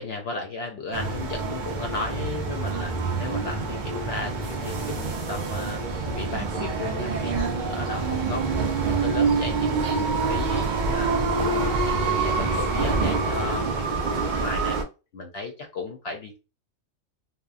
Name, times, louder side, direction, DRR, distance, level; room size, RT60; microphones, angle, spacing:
voice 1, 0.0-2.9 3.2-5.8 6.1-8.6 9.0-11.5 11.9-14.8 15.1-16.4, left 3 dB, 60° left, 3 dB, 0.7 m, -35 dB
sound 1, 0.9-14.8, right 4 dB, 70° right, 0.4 m, -26 dB
2.8 x 2.2 x 2.4 m, 0.30 s
omnidirectional pair, 1.4 m